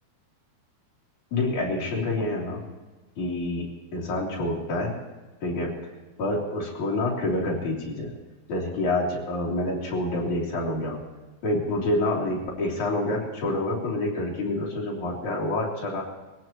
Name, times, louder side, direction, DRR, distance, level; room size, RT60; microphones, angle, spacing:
voice 1, 1.3-2.6 3.2-4.9 5.4-5.7 6.2-8.1 8.5-11.0 11.4-16.0, left 2 dB, 45° left, -4 dB, 4.5 m, -27 dB
23.5 x 17.5 x 3.0 m, 1.2 s
omnidirectional pair, 5.0 m